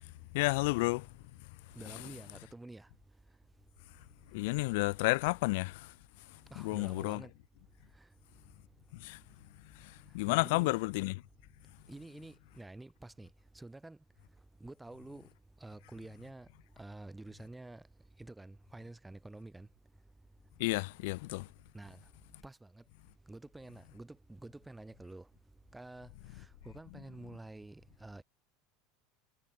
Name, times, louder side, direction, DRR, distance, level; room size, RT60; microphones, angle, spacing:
voice 1, 0.3-1.0 1.9-2.0 4.3-5.9 6.6-7.2 9.0-9.2 10.1-11.1 20.6-21.4, left 24 dB, 70° left, 0.3 m, -31 dB
voice 2, 1.7-2.9 6.5-7.3 10.3-10.8 11.9-13.3 13.5-14.0 14.6-15.3 15.6-16.5 16.8-17.8 18.2-19.7 21.7-22.0 22.4-22.8 23.3-25.3 25.7-26.1 26.4-28.2, right 2 dB, 5° right, 3.4 m, -49 dB
supercardioid pair, 150°, 0 cm